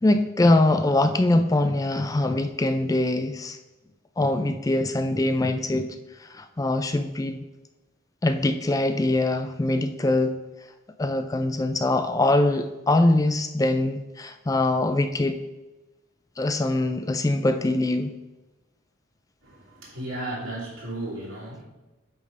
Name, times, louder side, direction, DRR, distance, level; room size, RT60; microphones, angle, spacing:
voice 1, 0.0-3.6 4.2-5.9 6.4-7.4 8.2-10.4 11.0-15.4 16.4-18.1, left 2 dB, 15° left, 9 dB, 0.3 m, -23 dB
voice 2, 19.4-21.6, right 1 dB, 80° right, -5 dB, 2.6 m, -34 dB
8.2 x 3.5 x 5.4 m, 1.0 s
head